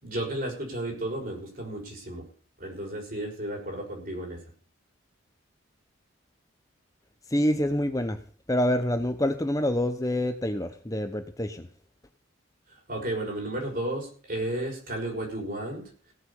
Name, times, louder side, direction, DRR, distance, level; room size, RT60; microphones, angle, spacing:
voice 1, 0.0-2.2 2.6-4.4 12.7-16.1, right 1 dB, 45° right, 0 dB, 5.7 m, -33 dB
voice 2, 7.3-8.2 8.5-11.7, left 1 dB, 15° left, 8 dB, 0.8 m, -26 dB
17.0 x 7.5 x 7.0 m, 0.43 s
head